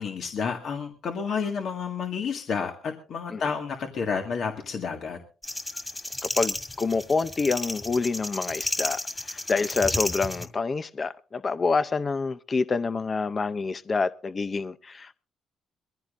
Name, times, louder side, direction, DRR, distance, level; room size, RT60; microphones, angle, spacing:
voice 1, 0.0-5.2, left 6 dB, 65° left, 1.8 m, -30 dB
sound 1, 5.4-10.5, left 1 dB, 15° left, 2.3 m, -32 dB
voice 2, 6.2-15.2, left 4 dB, 35° left, 0.6 m, -27 dB
22.5 x 15.0 x 2.6 m
cardioid pair, 90°, 0 cm